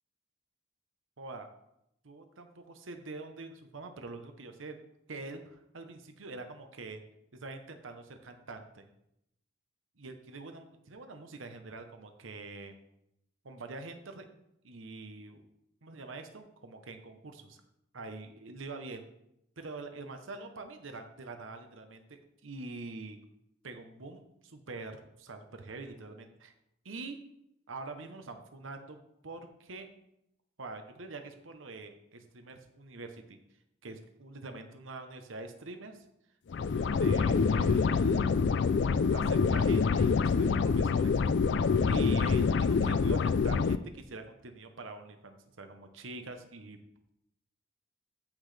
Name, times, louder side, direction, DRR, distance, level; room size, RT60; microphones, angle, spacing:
voice 1, 1.2-1.5 2.0-4.8 5.1-7.0 7.3-8.8 10.0-12.7 13.4-14.3 14.6-15.5 15.8-17.6 17.9-19.0 19.6-23.2 23.6-26.5 26.8-27.2 27.7-29.0 29.2-29.9 30.6-33.4 33.8-36.0 36.7-38.4 39.1-41.2 41.8-46.8, right 3 dB, 85° right, 6 dB, 1.0 m, -45 dB
sound 1, 36.5-43.8, left 5 dB, 60° left, 0.4 m, -26 dB
14.5 x 6.0 x 3.4 m, 0.81 s
head